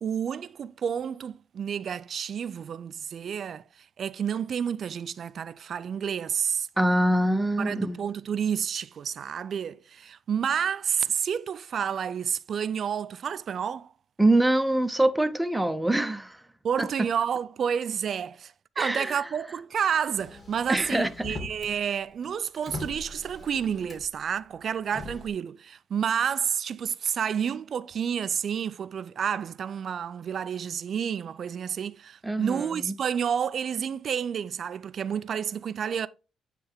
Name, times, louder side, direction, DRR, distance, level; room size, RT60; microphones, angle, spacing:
voice 1, 0.0-6.7 7.6-13.9 16.6-36.1, right 8 dB, 55° right, 0.3 m, -30 dB
voice 2, 6.8-8.0 14.2-16.4 16.8-16.9 18.8-19.2 20.7-21.1 32.2-33.0, right 1 dB, 5° right, 0.7 m, -24 dB
Motor vehicle (road), 20.2-21.8 22.1-24.2 24.8-25.3, left 2 dB, 30° left, 2.3 m, -41 dB
8.6 x 3.3 x 3.5 m
cardioid pair, 90°, 0 cm